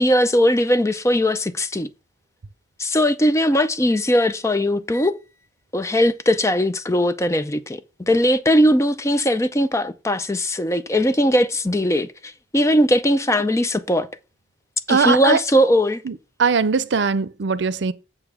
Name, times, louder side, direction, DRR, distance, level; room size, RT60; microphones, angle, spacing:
voice 1, 0.0-1.9 2.8-5.2 5.7-14.1 14.9-16.0, equal, 15° left, 0.5 m, -19 dB
voice 2, 14.9-15.4 16.1-17.9, right 5 dB, 80° right, 0.6 m, -20 dB
7.6 x 6.9 x 3.6 m
head